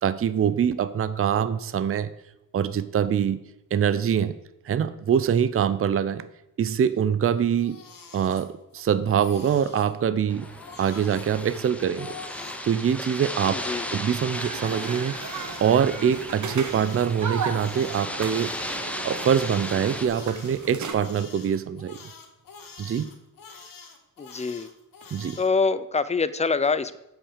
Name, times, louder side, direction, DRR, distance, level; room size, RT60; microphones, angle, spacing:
voice 1, 0.0-2.1 2.5-3.4 3.7-4.4 4.6-6.3 6.6-7.8 8.1-10.5 10.8-12.1 12.6-13.5 13.9-15.2 15.6-18.5 19.0-22.0 22.8-23.1 25.1-25.4, right 8 dB, 40° right, 14 dB, 0.5 m, -24 dB
Crying sobbing, 7.3-8.8 9.1-9.9 10.4-12.6 13.2-17.1 17.5-25.5, left 5 dB, 75° left, 1.6 m, -45 dB
sound 1, 10.3-20.1, left 1 dB, 5° left, 1.0 m, -36 dB
voice 2, 13.5-13.8 24.2-24.7 25.4-27.0, left 4 dB, 20° left, 15 dB, 0.5 m, -25 dB
sound 2, 14.3-20.9, right 5 dB, 60° right, 1.2 m, -36 dB
8.4 x 5.8 x 7.1 m, 0.88 s
wide cardioid pair, 105°, 34 cm